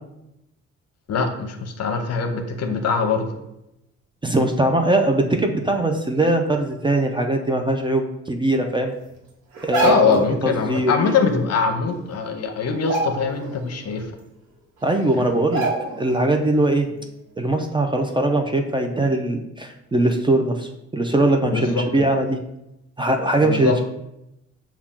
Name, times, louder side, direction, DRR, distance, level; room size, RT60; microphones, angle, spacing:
voice 1, 1.1-3.3 9.8-14.0 15.2-15.3 21.5-21.9 23.4-23.8, left 5 dB, 55° left, 5 dB, 0.7 m, -22 dB
voice 2, 4.2-8.9 9.6-10.9 14.8-15.7 16.0-16.9 17.4-22.4 23.0-23.8, right 1 dB, 15° right, 4 dB, 0.4 m, -21 dB
sound 1, 9.5-10.3 11.7-11.8 12.1-12.4 12.8-13.6 14.0-14.1 14.9-15.0 15.5-16.1 16.5-16.7, right 2 dB, 70° right, 1.1 m, -25 dB
5.9 x 2.3 x 3.6 m, 0.86 s
cardioid pair, 90°, 30 cm